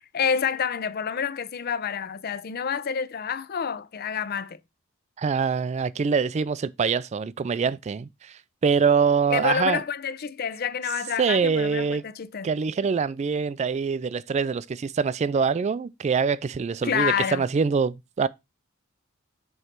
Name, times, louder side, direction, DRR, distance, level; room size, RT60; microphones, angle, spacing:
voice 1, 0.1-4.6 9.3-12.5 16.8-17.4, left 7 dB, 45° left, 0.5 m, -28 dB
voice 2, 5.2-9.8 11.2-12.0 12.4-18.3, right 5 dB, 30° right, 0.3 m, -24 dB
7.8 x 3.2 x 5.7 m
head